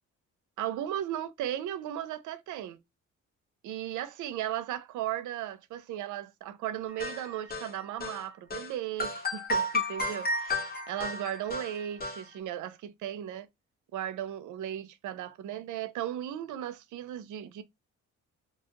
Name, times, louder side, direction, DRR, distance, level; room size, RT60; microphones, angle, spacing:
voice 1, 0.6-2.8 3.6-13.5 13.9-17.6, right 11 dB, 80° right, 0.6 m, -36 dB
sound 1, 7.0-8.2 8.5-8.7 9.0-12.2, left 1 dB, 30° left, 1.0 m, -32 dB
2.8 x 2.3 x 2.8 m
cardioid pair, 90°, 30 cm